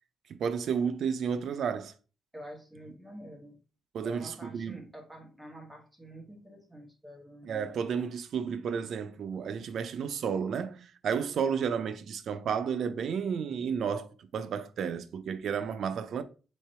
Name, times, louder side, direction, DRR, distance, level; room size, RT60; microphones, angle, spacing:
voice 1, 0.4-1.9 3.9-4.8 7.4-16.2, right 7 dB, 70° right, 0.5 m, -32 dB
voice 2, 2.3-3.6 4.0-7.7, equal, 10° right, 1.2 m, -47 dB
3.6 x 3.2 x 4.3 m
cardioid pair, 125°, 0 cm